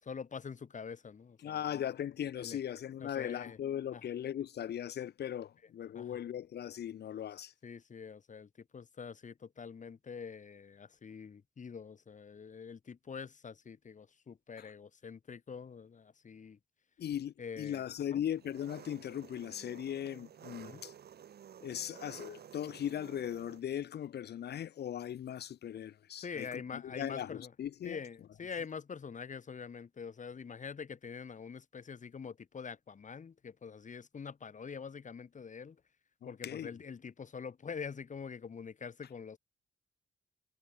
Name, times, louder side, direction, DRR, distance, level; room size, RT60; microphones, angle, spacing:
voice 1, 0.0-1.9 2.4-2.6 3.0-3.6 3.9-4.0 5.9-6.2 7.6-16.6 17.4-17.8 18.1-18.2 20.6-20.8 26.2-27.5 27.8-35.8 36.3-39.4, left 6 dB, 50° left, 6.9 m, -45 dB
voice 2, 1.4-7.5 14.6-14.7 17.0-20.9 21.6-28.0 36.2-36.7, left 10 dB, 85° left, 3.5 m, -39 dB
Engine, 18.3-23.6, right 9 dB, 75° right, 4.6 m, -53 dB
cardioid pair, 100°, 17 cm